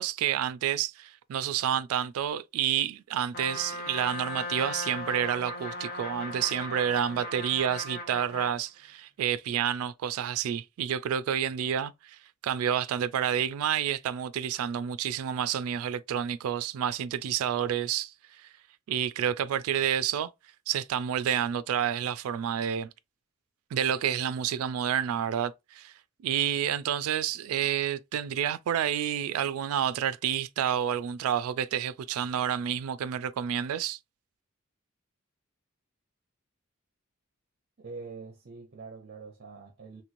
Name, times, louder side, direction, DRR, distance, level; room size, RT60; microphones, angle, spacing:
voice 1, 0.0-12.2 12.4-18.5 18.9-20.3 20.7-22.9 23.7-25.9 26.2-34.0, right 9 dB, 90° right, 0.3 m, -29 dB
Trumpet, 3.3-8.6, left 2 dB, 45° left, 0.7 m, -37 dB
voice 2, 37.8-40.0, right 4 dB, 50° right, 0.6 m, -44 dB
3.1 x 3.0 x 2.5 m
head